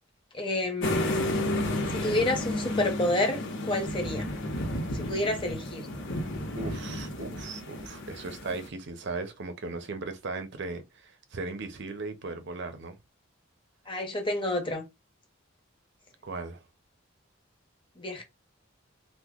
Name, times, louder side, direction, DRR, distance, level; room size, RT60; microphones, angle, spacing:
voice 1, 0.3-1.2 1.9-4.3 4.9-5.9 13.9-14.9 18.0-18.2, left 1 dB, 25° left, 1.0 m, -29 dB
sound 1, 0.8-8.7, left 1 dB, 65° left, 0.9 m, -32 dB
voice 2, 6.5-13.0 16.2-16.6, right 3 dB, 60° right, 0.7 m, -37 dB
2.9 x 2.2 x 3.5 m
head